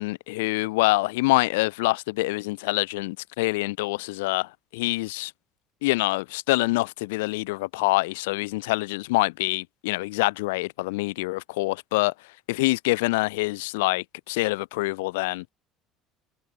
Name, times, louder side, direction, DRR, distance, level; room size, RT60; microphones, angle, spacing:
voice 1, 0.0-5.3 5.8-12.1 12.5-15.4, left 22 dB, 85° left, 5.2 m, -25 dB
hypercardioid pair, 80°, 0 cm